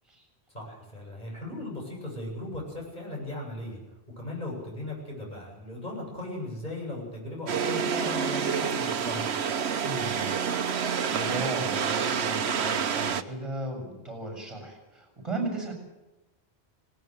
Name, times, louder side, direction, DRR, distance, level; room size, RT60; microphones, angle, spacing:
voice 1, 0.5-3.8 4.2-9.4, left 1 dB, 45° left, -2 dB, 8.3 m, -37 dB
sound 1, 7.5-13.2, right 7 dB, 80° right, 1.2 m, -28 dB
voice 2, 9.8-10.3 10.9-15.7, right 2 dB, 30° right, 3 dB, 7.2 m, -36 dB
19.0 x 19.0 x 7.9 m, 1.0 s
omnidirectional pair, 1.1 m